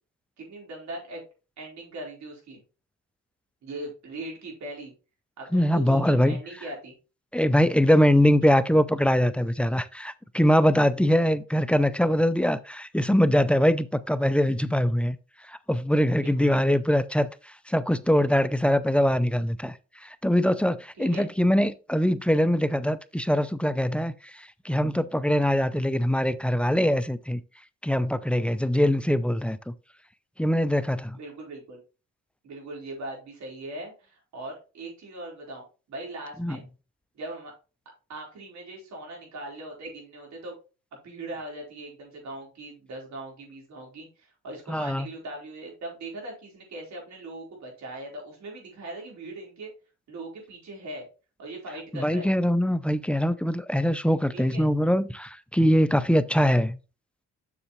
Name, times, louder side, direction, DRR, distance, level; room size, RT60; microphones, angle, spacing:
voice 1, 0.4-1.2 1.6-2.6 3.6-4.9 5.4-6.9 8.4-8.5 16.2-16.8 21.0-21.3 31.1-31.8 32.4-36.7 37.1-37.5 38.1-40.6 40.9-49.7 50.1-51.1 51.4-52.3 54.3-54.6, right 2 dB, 65° right, 4.3 m, -40 dB
voice 2, 5.5-6.4 7.3-15.2 15.5-19.8 20.0-27.4 27.8-29.7 30.4-31.2 36.4-36.6 44.7-45.1 51.9-56.8, equal, 5° left, 0.4 m, -23 dB
7.2 x 6.6 x 3.1 m
cardioid pair, 90°, 30 cm